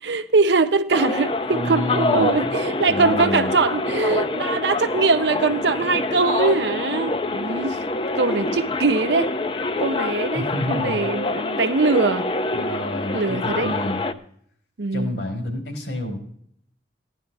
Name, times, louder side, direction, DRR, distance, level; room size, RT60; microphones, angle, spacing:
voice 1, 0.0-7.8 8.1-9.3 9.8-12.3 13.1-13.7 14.8-15.2, right 3 dB, 80° right, 0.8 m, -22 dB
sound 1, 0.9-14.1, left 2 dB, 30° left, 0.5 m, -26 dB
voice 2, 1.5-2.6 2.9-3.5 10.3-11.0 12.5-14.1 14.9-16.3, equal, 85° left, 4.0 m, -29 dB
16.0 x 11.0 x 3.4 m
head